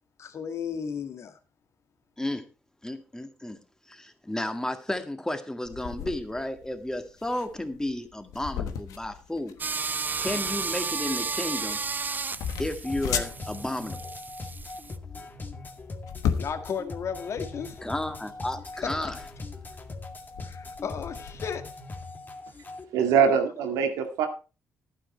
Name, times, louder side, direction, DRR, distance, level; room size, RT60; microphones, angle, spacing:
voice 1, 0.2-1.4 15.1-15.3 16.4-17.8 18.8-19.1 20.4-21.7, left 7 dB, 60° left, 1.7 m, -34 dB
voice 2, 2.8-3.6 3.9-9.6 10.2-11.8 12.6-14.1 17.8-19.2, left 1 dB, 10° left, 1.9 m, -32 dB
sound 1, 5.6-21.4, left 8 dB, 85° left, 1.3 m, -37 dB
sound 2, 9.6-15.0, right 4 dB, 35° right, 0.6 m, -33 dB
sound 3, 12.5-22.8, left 3 dB, 35° left, 2.0 m, -41 dB
voice 3, 22.9-24.3, right 7 dB, 90° right, 2.0 m, -23 dB
11.5 x 9.1 x 4.2 m
supercardioid pair, 70°, 6 cm